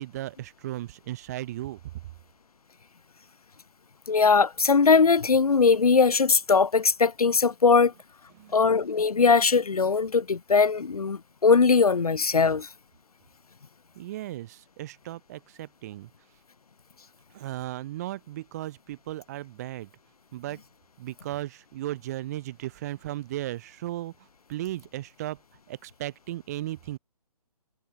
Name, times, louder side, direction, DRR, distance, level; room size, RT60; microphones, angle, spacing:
voice 1, 0.0-1.8 8.4-8.6 14.0-16.1 17.3-19.9 20.3-20.6 21.0-24.1 24.5-25.4 25.7-27.0, right 15 dB, 25° right, 7.3 m, -36 dB
voice 2, 4.1-7.9 8.5-12.7, left 5 dB, 70° left, 7.5 m, -20 dB
hypercardioid pair, 165°, 20 cm